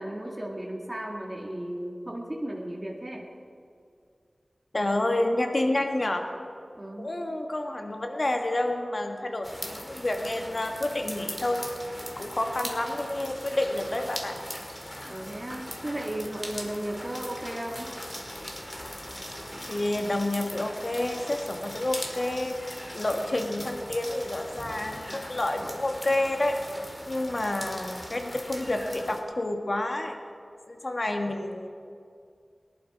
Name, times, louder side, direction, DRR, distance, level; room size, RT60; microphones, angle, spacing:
voice 1, 0.0-3.2 6.8-7.1 15.1-18.0, right 1 dB, 20° right, -1 dB, 2.0 m, -35 dB
voice 2, 4.7-6.2 7.0-11.6 12.2-14.4 19.7-22.5 22.9-26.6 27.1-30.2 30.7-31.7, left 1 dB, 50° left, 4 dB, 1.6 m, -29 dB
sound 1, 9.4-29.2, equal, 15° left, 2.0 m, -40 dB
19.0 x 11.0 x 5.1 m, 2.3 s
wide cardioid pair, 55°, 0 cm